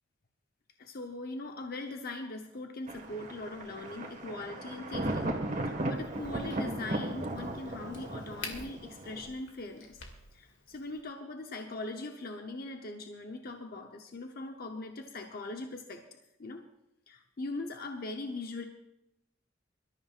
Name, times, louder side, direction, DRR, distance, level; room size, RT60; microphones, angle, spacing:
voice 1, 0.8-5.3 5.6-10.0 10.3-16.1 16.4-16.6 17.1-18.7, left 2 dB, 55° left, 4 dB, 0.9 m, -41 dB
Thunder, 2.9-9.3, right 1 dB, 45° right, 1.7 m, -36 dB
Crack, 5.9-11.0, left 4 dB, 80° left, 2.3 m, -49 dB
24.0 x 13.0 x 2.5 m, 0.88 s
head